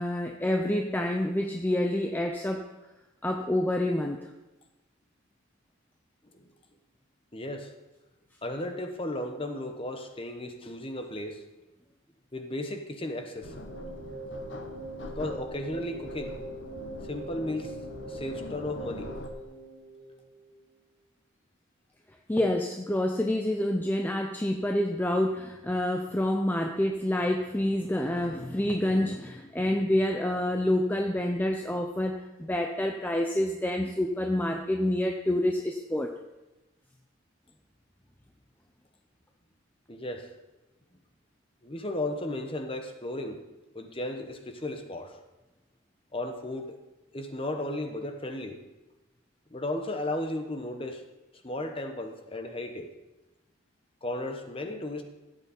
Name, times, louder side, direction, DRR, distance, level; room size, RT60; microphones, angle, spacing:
voice 1, 0.0-2.6 3.2-4.3 22.3-36.1, left 1 dB, 10° left, 3 dB, 0.5 m, -28 dB
voice 2, 7.3-7.7 8.4-11.4 12.3-13.6 15.0-16.4 17.0-17.7 18.1-19.1 39.9-40.3 41.6-43.4 43.7-45.2 46.1-46.8 47.1-48.6 49.5-51.0 51.4-52.9 54.0-55.0, left 1 dB, 25° left, 5 dB, 1.0 m, -35 dB
sound 1, 13.3-20.6, right 1 dB, 50° right, 2.5 m, -42 dB
sound 2, 13.4-19.3, left 1 dB, 55° left, 1.0 m, -43 dB
14.5 x 8.3 x 4.3 m, 1.0 s
head